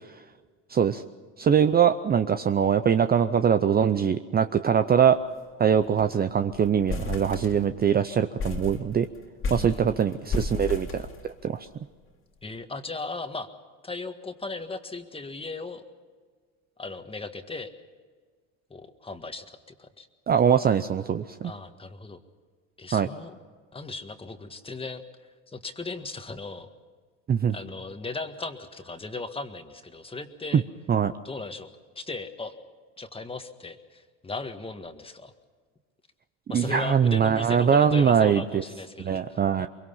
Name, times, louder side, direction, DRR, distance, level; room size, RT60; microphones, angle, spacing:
voice 1, 0.7-1.0 1.4-5.2 5.6-9.1 9.5-11.1 11.4-11.7 20.3-21.5 22.9-23.1 27.3-27.5 30.5-30.6 30.9-31.1 36.5-38.6 39.0-39.7, right 8 dB, 25° right, 10 dB, 0.7 m, -22 dB
sound 1, 4.9-5.1 5.4-5.5 5.8-6.2 6.5-7.9 8.4-11.7, left 4 dB, 35° left, 2.4 m, -33 dB
voice 2, 9.6-10.4 12.4-13.5 13.8-15.8 16.8-17.7 18.7-20.1 21.4-22.2 22.8-23.3 23.7-26.7 27.5-30.6 31.2-31.7 31.9-32.5 33.0-35.3 36.5-39.7, left 3 dB, 15° left, 7 dB, 1.7 m, -37 dB
23.5 x 23.0 x 5.7 m, 1.6 s
supercardioid pair, 105°, 37 cm